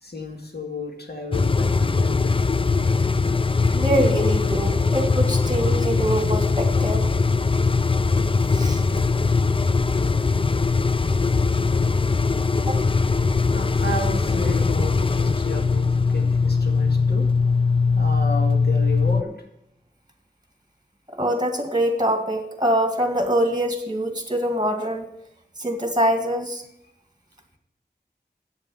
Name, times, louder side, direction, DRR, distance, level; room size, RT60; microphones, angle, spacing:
voice 1, 0.0-2.4 13.5-17.3 18.0-19.3, left 1 dB, 65° left, 2 dB, 2.1 m, -32 dB
sound 1, 1.3-19.2, left 4 dB, 30° left, 0.4 m, -21 dB
voice 2, 3.7-7.1 8.5-8.8 12.7-12.8 21.2-25.1 25.6-26.6, right 1 dB, 25° right, 4 dB, 2.0 m, -24 dB
8.5 x 7.1 x 7.1 m, 0.81 s
wide cardioid pair, 45°, 18 cm